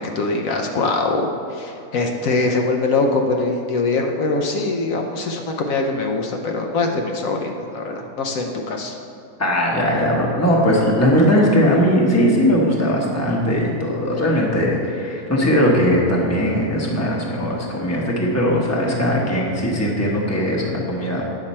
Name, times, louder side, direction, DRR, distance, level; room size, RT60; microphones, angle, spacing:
voice 1, 0.1-9.0, left 3 dB, 70° left, 2 dB, 1.0 m, -22 dB
voice 2, 9.4-21.2, equal, 10° left, -2 dB, 0.9 m, -19 dB
8.8 x 5.9 x 4.3 m, 2.8 s
omnidirectional pair, 1.5 m